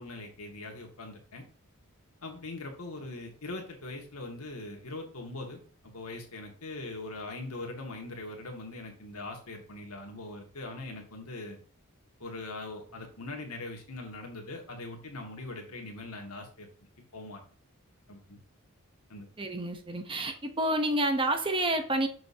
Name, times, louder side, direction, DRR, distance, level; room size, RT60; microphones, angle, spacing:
voice 1, 0.0-1.4 2.2-5.6 5.9-11.6 12.2-16.7 17.1-17.4 18.1-18.4 19.1-19.3, left 2 dB, 80° left, 2 dB, 2.0 m, -41 dB
voice 2, 19.4-22.1, right 1 dB, 25° right, 6 dB, 0.8 m, -29 dB
6.9 x 6.4 x 2.8 m, 0.42 s
head